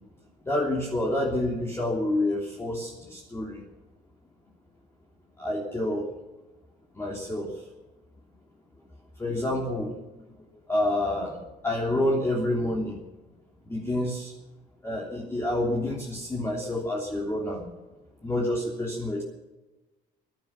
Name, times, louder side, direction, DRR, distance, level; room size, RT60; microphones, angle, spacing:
voice 1, 0.4-3.6 5.4-6.1 6.9-7.5 9.2-10.0 10.7-11.4 11.6-13.0 13.6-14.3 14.8-17.6 18.2-19.2, left 1 dB, 15° left, -2 dB, 3.1 m, -28 dB
19.0 x 12.0 x 5.9 m, 1.1 s
cardioid pair, 110°, 17 cm